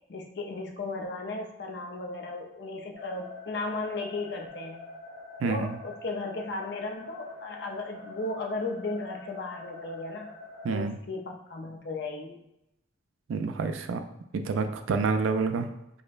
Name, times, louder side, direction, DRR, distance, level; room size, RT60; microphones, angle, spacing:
voice 1, 0.1-4.8 5.4-10.3 10.7-12.4, left 2 dB, 55° left, 2 dB, 0.5 m, -35 dB
sound 1, 2.9-10.8, left 2 dB, 45° right, 1.1 m, -45 dB
voice 2, 10.6-11.0 13.3-14.0 14.3-15.7, right 4 dB, 75° right, 8 dB, 0.3 m, -28 dB
4.9 x 2.1 x 2.4 m, 0.84 s
head